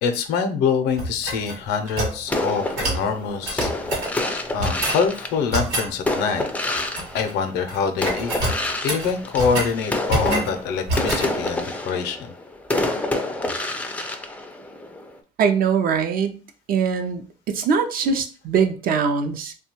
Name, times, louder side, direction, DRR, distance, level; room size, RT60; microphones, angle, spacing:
voice 1, 0.0-3.7 4.5-6.5 7.1-8.3 8.8-12.3 12.8-12.9, left 6 dB, 85° left, 7 dB, 0.5 m, -25 dB
sound 1, 1.0-2.2 2.8-3.0 3.4-4.1 4.6-5.0 5.5-5.9 6.7-7.3 7.6-7.8 8.0-9.7 10.1-10.5 10.9-11.3, right 2 dB, 85° right, 1.0 m, -26 dB
sound 2, 2.3-7.7 8.0-15.2, left 2 dB, 10° left, 0.3 m, -28 dB
voice 2, 15.4-16.4 16.7-19.5, right 6 dB, 60° right, 7 dB, 0.5 m, -22 dB
2.8 x 2.2 x 2.9 m, 0.36 s
cardioid pair, 110°, 17 cm